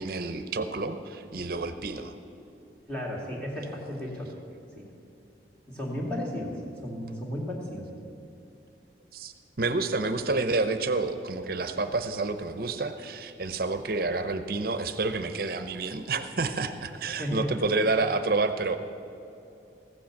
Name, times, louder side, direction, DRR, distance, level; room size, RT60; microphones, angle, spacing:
voice 1, 0.0-2.2 9.1-18.8, right 3 dB, 55° right, 9 dB, 0.7 m, -29 dB
voice 2, 2.9-4.4 4.7-4.9 5.7-7.9 17.2-17.5, equal, 5° left, -4 dB, 2.2 m, -34 dB
15.0 x 7.8 x 7.2 m, 2.8 s
head